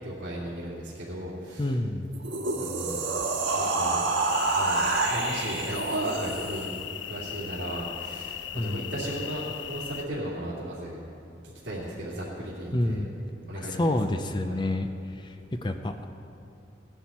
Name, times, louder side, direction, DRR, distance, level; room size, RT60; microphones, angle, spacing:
voice 1, 0.0-1.7 2.5-3.1 3.5-4.0 4.5-6.7 7.1-11.0 11.6-13.0 13.5-13.9 14.5-14.6, right 1 dB, 65° right, -10 dB, 2.7 m, -36 dB
voice 2, 1.6-2.1 8.5-8.9 12.7-13.2 13.5-14.9 15.2-16.1, left 1 dB, 25° left, 7 dB, 0.5 m, -28 dB
sound 1, 2.1-6.7, right 3 dB, 90° right, 1.5 m, -27 dB
sound 2, 4.3-10.0, left 10 dB, 80° left, 0.5 m, -38 dB
17.0 x 10.5 x 4.3 m, 2.6 s
head